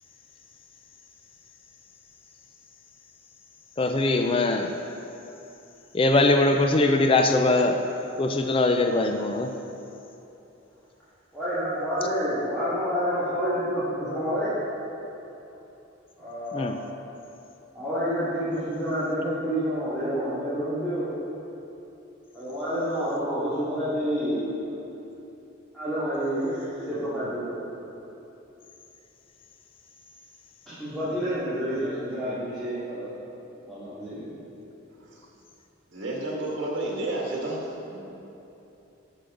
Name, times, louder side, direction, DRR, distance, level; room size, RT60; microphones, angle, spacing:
voice 1, 3.8-4.7 5.9-7.8 8.2-9.5 16.5-16.8, left 2 dB, 25° left, 5 dB, 0.4 m, -21 dB
voice 2, 11.3-14.5 16.2-16.8 17.7-21.1 22.3-24.7 25.7-27.6 30.7-33.1 33.7-34.3, equal, ahead, -15 dB, 2.3 m, -28 dB
voice 3, 35.9-38.0, right 1 dB, 65° right, -3 dB, 2.1 m, -31 dB
12.5 x 6.5 x 3.8 m, 2.9 s
head